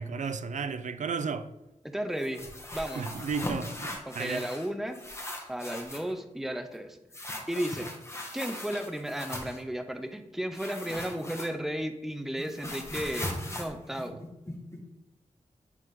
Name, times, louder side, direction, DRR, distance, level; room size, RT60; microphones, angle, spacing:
voice 1, 0.0-1.5 3.0-4.5, right 5 dB, 75° right, 0.4 m, -33 dB
voice 2, 1.8-2.5 2.7-3.1 4.1-5.0 5.5-7.0 7.5-7.9 8.3-14.3, equal, ahead, 0.5 m, -34 dB
sound 1, 2.2-4.7 4.9-6.1 7.1-9.6 10.5-11.8 12.1-14.8, left 1 dB, 20° left, 1.1 m, -39 dB
9.2 x 3.5 x 3.6 m
wide cardioid pair, 125°, 13 cm